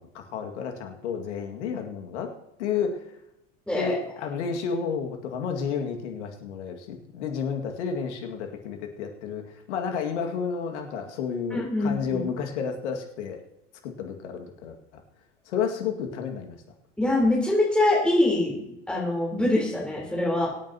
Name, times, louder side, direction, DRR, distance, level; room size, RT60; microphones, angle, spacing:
voice 1, 0.0-2.3 2.6-3.0 3.7-13.4 13.8-15.0 15.5-16.6, left 6 dB, 70° left, 4 dB, 2.2 m, -31 dB
voice 2, 3.7-4.0 11.5-12.2 17.0-20.5, left 1 dB, 5° left, -4 dB, 3.9 m, -24 dB
23.5 x 9.1 x 2.9 m, 0.84 s
hypercardioid pair, 80°, 36 cm